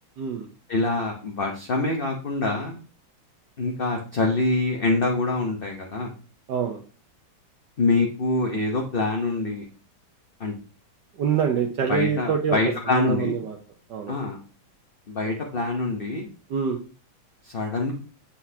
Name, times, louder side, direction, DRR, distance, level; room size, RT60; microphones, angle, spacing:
voice 1, 0.2-0.5 6.5-6.8 11.2-12.6 12.9-13.6 13.9-14.1 16.5-16.8, right 7 dB, 65° right, 1 dB, 1.4 m, -25 dB
voice 2, 0.7-2.8 3.6-6.1 7.8-9.6 10.4-10.5 11.9-13.3 14.1-14.4 15.1-16.3 17.4-17.9, left 3 dB, 40° left, 1 dB, 0.9 m, -25 dB
7.9 x 5.9 x 2.8 m, 0.37 s
omnidirectional pair, 2.2 m